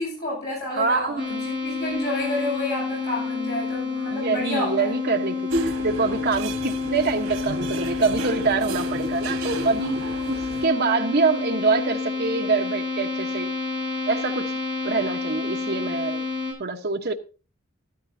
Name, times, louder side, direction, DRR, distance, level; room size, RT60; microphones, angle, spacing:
voice 1, 0.0-4.9, left 1 dB, 50° left, 7.9 m, -30 dB
voice 2, 0.7-1.4 4.1-10.0 10.3-13.5 14.1-14.5 14.8-16.2 16.6-17.1, right 4 dB, 50° right, 1.0 m, -25 dB
sound 1, 1.2-16.5, left 4 dB, 20° left, 7.8 m, -29 dB
sound 2, 5.5-10.7, right 2 dB, 90° right, 1.3 m, -32 dB
13.5 x 13.0 x 2.7 m
head